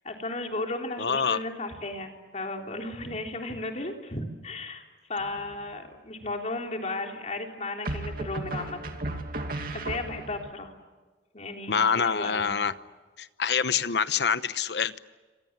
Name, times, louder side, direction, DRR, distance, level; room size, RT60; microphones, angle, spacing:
voice 1, 0.0-4.8 5.1-9.0 9.6-10.7 11.3-12.5, left 2 dB, 40° left, 2 dB, 3.5 m, -35 dB
voice 2, 1.0-1.4 11.7-12.7 13.2-15.0, left 6 dB, 70° left, 14 dB, 0.9 m, -26 dB
sound 1, 5.2-5.8 7.8-10.5, right 2 dB, 55° right, 2.5 m, -35 dB
28.0 x 26.0 x 7.4 m, 1.3 s
head